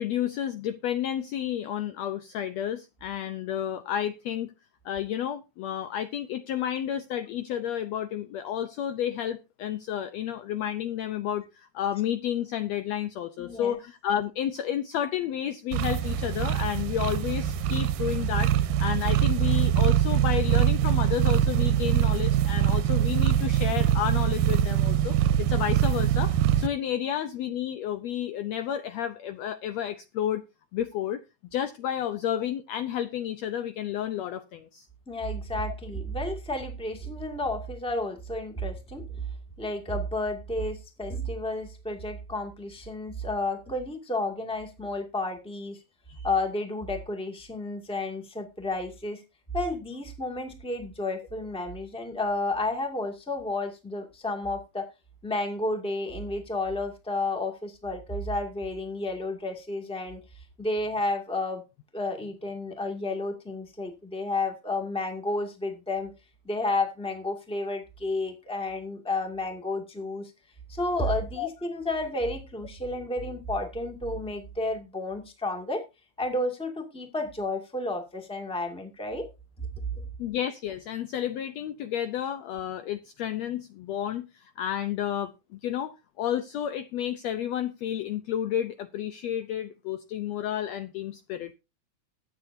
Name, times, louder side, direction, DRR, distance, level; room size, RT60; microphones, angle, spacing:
voice 1, 0.0-4.5 4.8-30.4 30.7-34.9 46.1-46.3 71.4-71.5 80.2-85.3 85.6-91.5, left 10 dB, 85° left, 10 dB, 1.5 m, -31 dB
voice 2, 13.4-13.8 35.1-39.2 39.6-45.8 46.2-49.2 49.5-54.8 55.2-60.2 60.6-61.6 61.9-66.1 66.4-70.3 70.7-75.8 76.2-79.3, left 2 dB, 5° left, 4 dB, 1.2 m, -31 dB
sound 1, 15.7-26.7, right 11 dB, 85° right, 2.4 m, -23 dB
21.5 x 8.0 x 2.7 m, 0.27 s
omnidirectional pair, 3.9 m